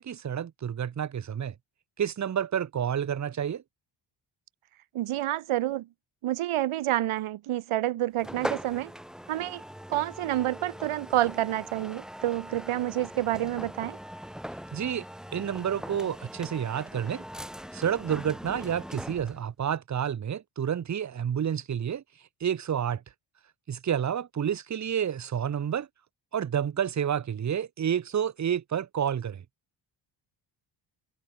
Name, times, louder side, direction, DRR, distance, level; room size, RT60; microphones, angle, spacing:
voice 1, 0.0-1.5 2.0-3.6 14.7-15.0 15.3-17.2 17.7-22.0 22.4-23.0 23.7-25.9 26.3-29.4, right 8 dB, 35° right, 1.1 m, -29 dB
voice 2, 4.9-5.9 6.2-8.9 9.3-9.6 9.9-14.0, right 14 dB, 80° right, 2.2 m, -28 dB
sound 1, 8.2-19.5, equal, ahead, 3.0 m, -41 dB
open air
cardioid pair, 125°, 49 cm